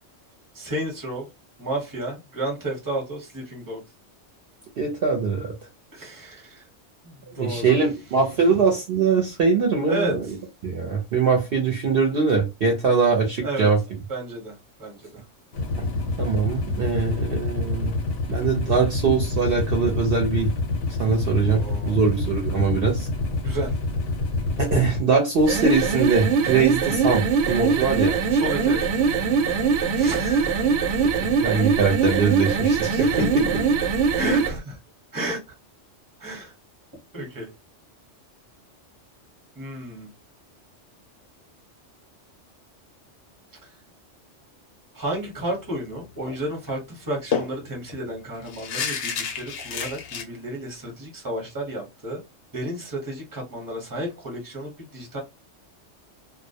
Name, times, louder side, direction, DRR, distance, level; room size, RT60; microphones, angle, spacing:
voice 1, 0.5-1.3 1.6-3.8 5.9-6.6 7.0-7.8 9.9-10.1 13.4-13.7 14.1-15.2 21.4-22.0 23.4-23.7 28.3-28.9 29.9-30.6 32.6-32.7 33.0-33.3 34.2-34.8 35.1-35.5 36.2-36.5 37.1-37.5 39.6-40.1 44.9-52.2 52.5-55.2, right 1 dB, 20° right, 0.8 m, -32 dB
voice 2, 4.8-5.5 7.3-10.2 10.6-13.8 16.2-18.0 18.3-20.5 21.0-23.1 24.6-28.2 31.4-33.1, right 5 dB, 60° right, 0.7 m, -22 dB
sound 1, 15.5-25.0, left 2 dB, 90° left, 1.0 m, -27 dB
sound 2, 25.4-34.6, right 5 dB, 90° right, 0.9 m, -22 dB
sound 3, 46.2-46.4 46.7-46.8 47.3-50.2, left 6 dB, 65° left, 0.7 m, -30 dB
2.3 x 2.0 x 2.6 m
omnidirectional pair, 1.2 m